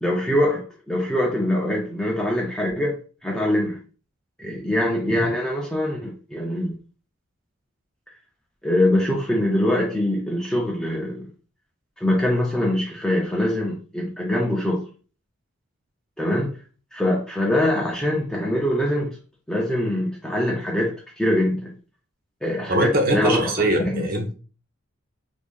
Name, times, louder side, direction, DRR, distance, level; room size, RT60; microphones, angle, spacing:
voice 1, 0.0-3.8 4.4-6.8 8.6-11.3 12.0-14.9 16.2-16.5 16.9-19.2 19.5-21.7 22.4-23.4 23.8-24.0, left 1 dB, 5° left, 0.4 m, -23 dB
voice 2, 22.7-24.3, right 1 dB, 45° right, 0.7 m, -22 dB
2.7 x 2.5 x 3.6 m
head